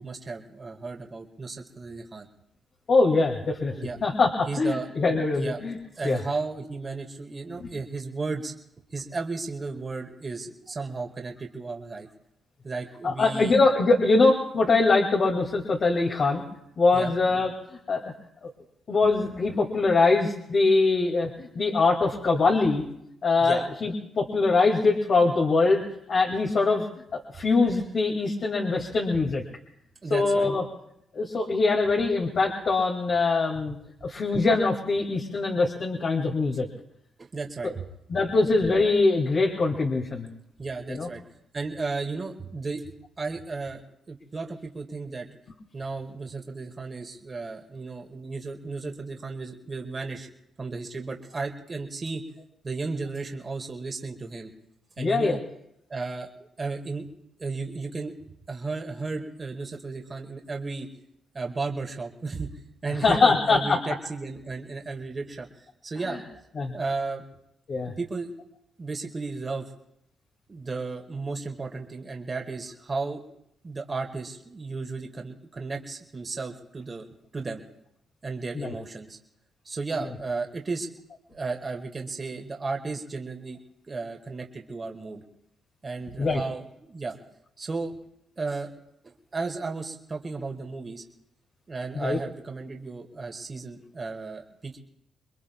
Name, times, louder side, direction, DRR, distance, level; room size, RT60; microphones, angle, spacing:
voice 1, 0.0-2.3 3.8-4.0 4.5-4.9 5.3-5.6 6.0-8.5 8.9-12.1 12.6-13.6 16.9-17.1 23.4-23.7 30.0-30.5 37.2-37.7 40.6-41.2 41.5-42.9 43.2-43.8 44.1-45.3 45.7-50.3 50.6-52.2 52.6-54.5 55.0-55.4 55.9-56.3 56.6-57.1 57.4-58.1 58.5-60.9 61.3-62.5 62.8-66.2 66.7-67.2 68.0-68.3 68.8-69.7 70.5-73.2 73.6-77.0 77.3-77.6 78.2-79.2 79.7-80.9 81.3-83.6 83.9-85.2 85.8-87.2 87.6-87.9 88.4-88.7 89.0-91.0 91.7-94.8, right 3 dB, 35° right, 2 dB, 2.0 m, -34 dB
voice 2, 2.9-3.7 4.0-5.7 6.0-6.2 7.6-7.7 13.0-16.4 16.8-17.5 17.9-18.1 18.4-18.5 18.9-22.8 23.2-25.8 26.1-26.9 27.1-29.4 30.1-30.6 31.1-33.8 34.0-36.7 37.6-37.7 38.1-40.3 40.9-41.1 55.0-55.4 63.0-63.8 66.6-66.8 67.7-67.9 78.6-78.7 86.2-86.4 91.9-92.2, left 3 dB, 55° left, -1 dB, 2.5 m, -23 dB
27.5 x 21.5 x 2.4 m, 0.76 s
supercardioid pair, 65°, 0 cm